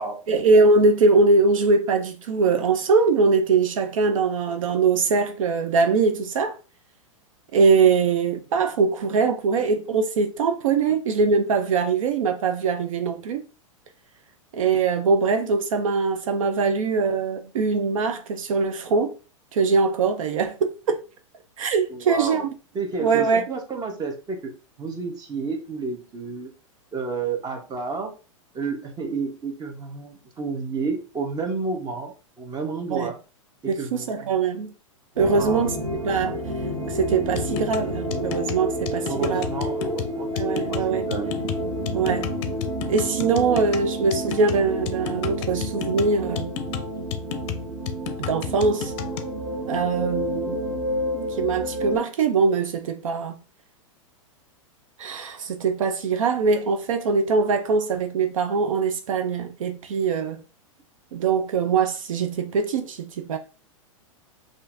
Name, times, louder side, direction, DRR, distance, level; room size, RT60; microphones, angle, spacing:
voice 1, 0.3-6.6 7.5-13.4 14.5-19.1 19.5-21.0 21.6-22.5 23.0-23.4 32.9-33.1 33.7-34.7 35.2-36.4 36.9-39.4 40.3-41.1 41.9-42.3 42.9-46.6 48.2-48.9 49.7-50.7 51.1-53.3 55.0-60.4 61.1-63.4, right 4 dB, 75° right, 0.6 m, -22 dB
voice 2, 21.9-22.4 22.7-24.5 24.8-26.5 26.9-28.1 28.5-33.2 33.6-34.3 35.3-35.7 39.0-41.3, right 4 dB, 20° right, 1.0 m, -31 dB
sound 1, 35.1-52.0, equal, 90° right, 1.1 m, -30 dB
sound 2, 37.4-49.3, left 9 dB, 50° left, 0.5 m, -33 dB
5.5 x 2.6 x 2.6 m
hypercardioid pair, 110°, 17 cm